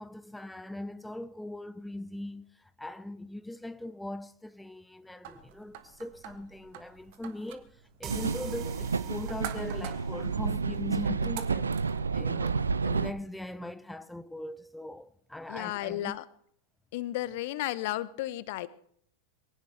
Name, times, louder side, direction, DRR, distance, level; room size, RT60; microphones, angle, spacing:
voice 1, 0.0-16.2, left 1 dB, 5° left, 0.6 m, -41 dB
sound 1, 5.2-12.6, right 10 dB, 50° right, 1.6 m, -47 dB
sound 2, 8.0-11.5, right 11 dB, 35° right, 1.2 m, -45 dB
sound 3, 8.1-13.1, right 4 dB, 75° right, 0.7 m, -30 dB
voice 2, 15.5-16.2 16.9-18.7, left 15 dB, 50° left, 0.9 m, -33 dB
23.5 x 17.0 x 3.4 m
figure-of-eight pair, 90°, 0 cm